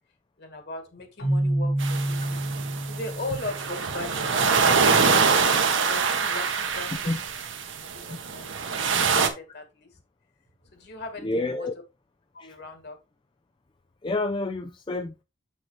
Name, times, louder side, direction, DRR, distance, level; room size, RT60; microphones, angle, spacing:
voice 1, 0.4-2.4 2.9-7.2 8.1-9.9 10.7-11.7 12.3-13.0, left 2 dB, 55° left, 2.1 m, -38 dB
Keyboard (musical), 1.2-4.1, right 1 dB, 80° left, 3.1 m, -28 dB
sound 1, 1.8-9.3, right 5 dB, 70° right, 1.3 m, -24 dB
voice 2, 11.2-11.7 12.4-12.6 14.0-15.2, left 2 dB, 25° left, 0.4 m, -29 dB
7.7 x 6.3 x 3.2 m
head